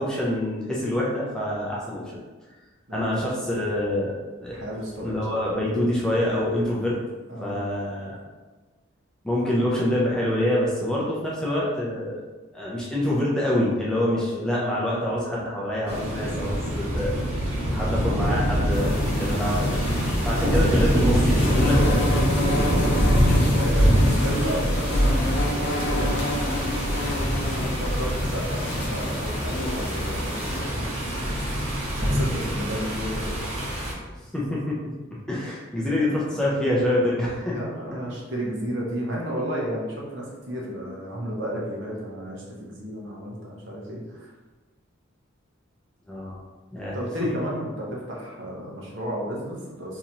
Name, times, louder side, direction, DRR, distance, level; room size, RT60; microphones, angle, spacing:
voice 1, 0.0-2.2 2.9-4.7 5.0-7.0 7.4-8.2 9.2-12.2 12.5-17.1 17.7-19.8 20.2-22.1 22.6-22.8 23.1-23.4 26.0-26.2 34.3-34.8 35.1-37.6 46.1-46.4 46.7-47.3, left 1 dB, 5° left, -6 dB, 0.5 m, -26 dB
voice 2, 4.5-5.8 7.3-7.6 14.1-14.5 17.5-17.8 19.7-20.5 21.5-21.6 23.5-26.3 27.5-31.3 32.0-33.3 37.4-44.3 46.9-50.0, equal, 60° right, -3 dB, 0.9 m, -33 dB
sound 1, 15.9-33.9, equal, 75° right, 1.2 m, -24 dB
sound 2, 18.7-30.6, left 1 dB, 55° left, 0.6 m, -31 dB
3.8 x 2.9 x 2.8 m, 1.3 s
head